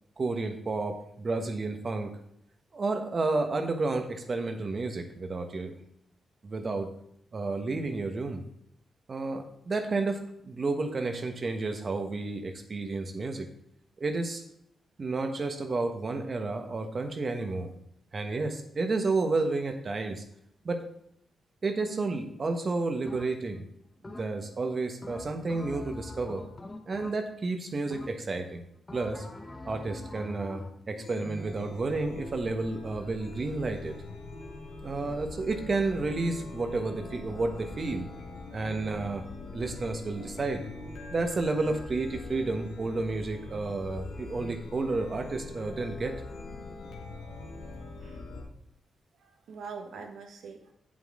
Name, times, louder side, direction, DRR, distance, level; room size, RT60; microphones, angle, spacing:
voice 1, 0.2-2.1 2.7-5.8 6.4-6.9 7.3-8.4 9.1-13.5 14.0-14.4 15.0-17.7 18.1-20.2 20.6-20.8 21.6-23.6 24.0-26.4 26.9-28.6 28.9-29.2 29.6-34.0 34.8-38.1 38.5-39.2 39.5-40.6 41.1-46.1, right 3 dB, 45° right, 6 dB, 1.3 m, -31 dB
sound 1, 23.1-23.6 24.0-24.6 25.0-27.5 27.9-28.4 28.9-30.8, left 2 dB, 25° left, 1.0 m, -44 dB
Chime, 31.0-48.4, left 2 dB, 85° left, 1.8 m, -42 dB
voice 2, 49.2-50.7, right 5 dB, 80° right, 4 dB, 1.3 m, -43 dB
8.2 x 7.6 x 3.8 m, 0.74 s
cardioid pair, 70°, 0 cm